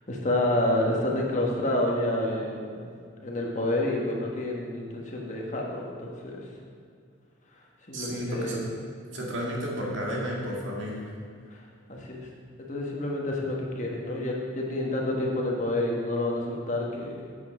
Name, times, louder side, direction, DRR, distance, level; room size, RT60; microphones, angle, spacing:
voice 1, 0.1-2.9 3.2-6.5 7.9-8.6 11.5-11.6 11.9-12.3 12.6-17.2, left 1 dB, 35° left, -2 dB, 1.5 m, -29 dB
voice 2, 7.9-8.6 9.1-11.1, equal, 70° right, -3 dB, 2.1 m, -32 dB
8.7 x 8.1 x 5.0 m, 2.3 s
head